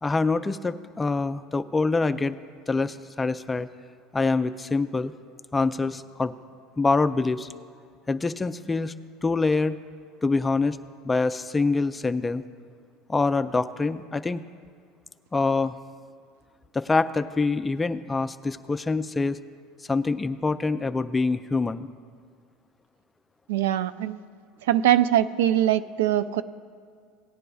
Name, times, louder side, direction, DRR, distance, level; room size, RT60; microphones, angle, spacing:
voice 1, 0.0-2.4 2.7-3.7 4.1-5.1 5.5-6.3 6.8-7.5 8.1-8.9 9.2-9.8 10.2-10.8 11.0-12.4 13.1-14.4 15.3-15.8 16.7-19.4 19.9-21.9, left 3 dB, 15° left, 12 dB, 0.4 m, -25 dB
voice 2, 23.5-24.2 24.7-26.4, right 12 dB, 90° right, 13 dB, 0.3 m, -22 dB
17.5 x 9.8 x 2.3 m, 2.1 s
supercardioid pair, 115°, 0 cm